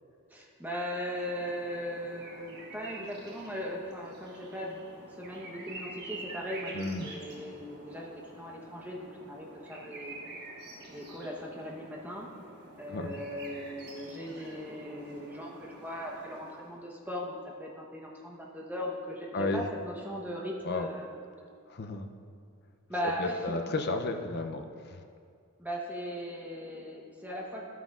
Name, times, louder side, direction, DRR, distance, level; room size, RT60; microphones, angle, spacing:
voice 1, 0.3-4.8 5.2-10.2 10.9-12.3 12.8-21.2 22.9-23.5 25.6-27.6, equal, 10° right, -2 dB, 1.0 m, -38 dB
sound 1, 0.9-16.9, right 2 dB, 50° right, 1.3 m, -48 dB
voice 2, 6.7-7.1 12.9-13.1 19.3-19.6 20.6-20.9 21.7-22.1 23.2-25.0, left 3 dB, 45° left, 5 dB, 0.6 m, -33 dB
11.5 x 9.2 x 2.5 m, 2.3 s
head